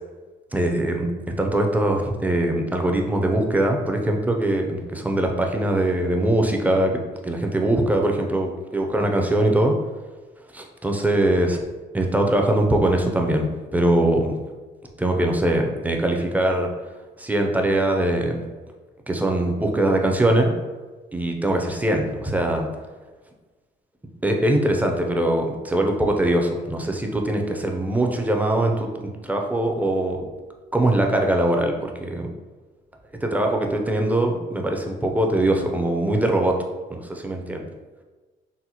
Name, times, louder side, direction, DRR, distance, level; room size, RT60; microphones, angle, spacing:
voice 1, 0.5-1.1 1.4-9.7 10.5-11.6 11.9-13.5 13.7-14.3 15.0-16.7 17.2-18.4 19.1-20.5 21.1-22.7 24.2-30.2 30.7-32.3 33.2-36.6 36.9-37.7, right 1 dB, 10° right, 2 dB, 0.4 m, -22 dB
4.0 x 2.1 x 2.8 m, 1.3 s
cardioid pair, 90°, 20 cm